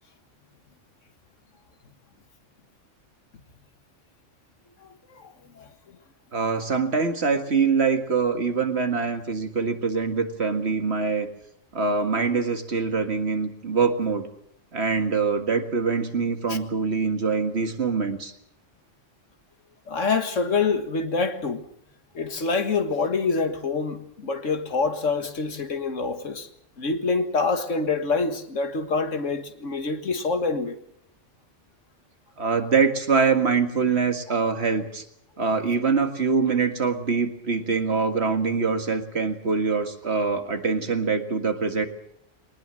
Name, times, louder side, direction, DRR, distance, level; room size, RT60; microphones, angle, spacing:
voice 1, 4.8-5.7 16.5-16.6 19.9-21.7 22.1-26.5 26.8-30.8, left 4 dB, 90° left, 2.0 m, -26 dB
voice 2, 6.3-11.3 11.7-14.3 14.7-18.3 32.4-35.0 35.4-41.9, right 5 dB, 60° right, 2.1 m, -24 dB
22.5 x 19.0 x 7.6 m
omnidirectional pair, 1.2 m